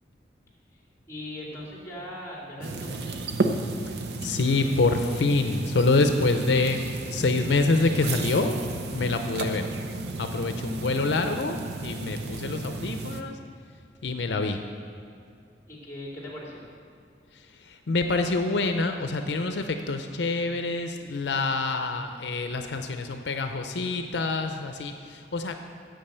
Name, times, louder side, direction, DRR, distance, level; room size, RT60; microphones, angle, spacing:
voice 1, 1.1-4.2 15.7-16.6, left 1 dB, 15° left, -4 dB, 2.5 m, -40 dB
sound 1, 2.6-13.2, right 2 dB, 70° right, 0.7 m, -33 dB
voice 2, 3.8-8.6 8.9-9.7 10.2-13.4 14.0-14.6 17.3-25.6, left 3 dB, 80° left, 6 dB, 0.6 m, -26 dB
8.8 x 7.5 x 6.7 m, 2.4 s
head